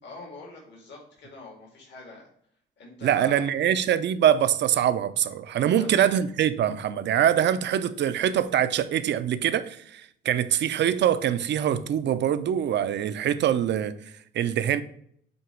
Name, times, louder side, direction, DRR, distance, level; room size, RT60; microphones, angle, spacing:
voice 1, 0.0-2.3 2.8-3.5 5.7-5.9, left 3 dB, 60° left, 2.2 m, -44 dB
voice 2, 3.0-14.0 14.3-14.8, right 10 dB, 60° right, 0.5 m, -24 dB
7.9 x 3.0 x 4.4 m
cardioid pair, 90°, 20 cm